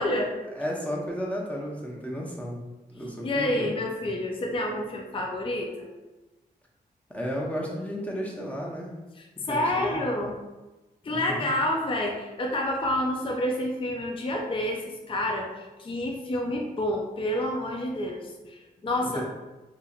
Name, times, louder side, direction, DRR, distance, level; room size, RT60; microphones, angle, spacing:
voice 1, 0.0-0.4 3.2-5.9 9.2-10.4 11.0-19.2, left 1 dB, 30° left, 1 dB, 0.4 m, -29 dB
voice 2, 0.6-2.6 2.9-3.7 7.1-8.9 9.5-10.0 11.1-11.5 19.0-19.2, equal, 10° left, -3 dB, 0.8 m, -33 dB
2.8 x 2.7 x 2.4 m, 1.1 s
cardioid pair, 50°, 17 cm